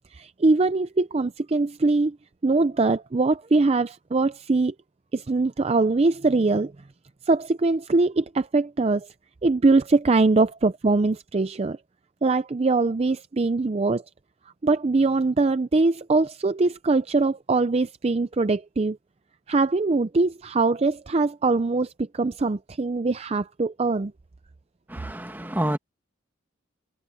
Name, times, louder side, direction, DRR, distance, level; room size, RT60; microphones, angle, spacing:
voice 1, 0.1-2.2 2.4-4.7 5.1-6.7 7.3-9.1 9.4-11.8 12.2-14.0 14.6-19.0 19.5-24.1, right 3 dB, 30° right, 0.4 m, -22 dB
voice 2, 24.9-25.8, right 1 dB, 10° right, 1.6 m, -28 dB
head